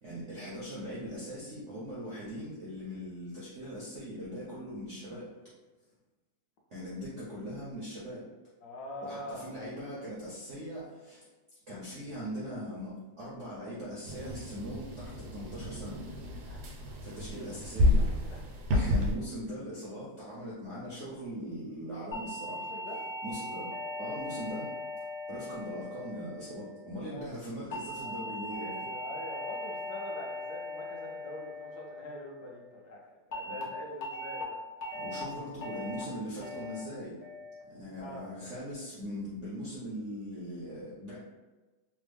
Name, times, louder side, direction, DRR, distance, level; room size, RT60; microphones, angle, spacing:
voice 1, 0.0-5.4 6.7-8.2 9.0-11.2 11.7-16.0 17.0-18.0 18.7-22.7 23.2-23.7 24.0-24.7 25.3-28.8 33.4-33.6 34.9-37.1 37.7-41.2, equal, 60° right, -8 dB, 0.7 m, -40 dB
voice 2, 8.6-9.7 16.4-17.0 18.1-18.4 18.7-18.8 22.5-23.0 26.9-27.5 28.0-34.6 37.9-38.3, left 1 dB, 65° left, -1 dB, 1.1 m, -44 dB
sound 1, 14.1-19.2, left 1 dB, 80° right, 1.4 m, -30 dB
sound 2, 22.1-26.6 27.7-32.2 33.3-33.6 34.0-34.4 34.8-35.2 35.6-36.0 36.4-36.8 37.2-37.6, left 1 dB, 90° left, 0.5 m, -39 dB
3.4 x 2.0 x 3.3 m, 1.2 s
omnidirectional pair, 2.1 m